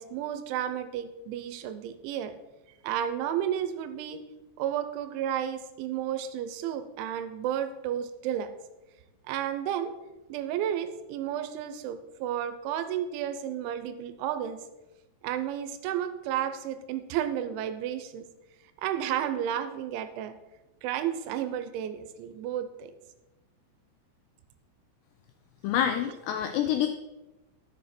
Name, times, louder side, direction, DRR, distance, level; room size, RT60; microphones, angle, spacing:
voice 1, 0.0-2.3 2.8-4.2 4.6-8.5 9.2-9.9 10.3-14.6 15.2-18.3 18.8-20.3 20.8-22.9, right 10 dB, 85° right, 10 dB, 3.1 m, -32 dB
voice 2, 25.6-26.9, left 10 dB, 85° left, 7 dB, 2.3 m, -27 dB
12.0 x 7.1 x 4.3 m, 1.0 s
omnidirectional pair, 5.4 m